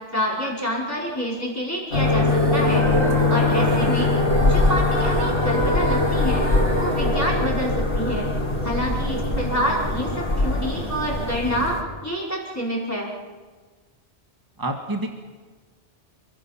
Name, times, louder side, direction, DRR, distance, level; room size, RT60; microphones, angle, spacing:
voice 1, 0.1-4.1 4.4-8.3 8.6-11.8 12.0-13.1, equal, 15° left, -4 dB, 5.0 m, -27 dB
sound 1, 1.9-11.8, left 2 dB, 80° left, 4.4 m, -22 dB
sound 2, 2.2-8.4, right 3 dB, 35° right, 1.8 m, -32 dB
voice 2, 3.5-3.9 14.6-15.1, right 1 dB, 20° right, 3 dB, 1.9 m, -29 dB
29.0 x 23.5 x 5.9 m, 1.4 s
omnidirectional pair, 1.1 m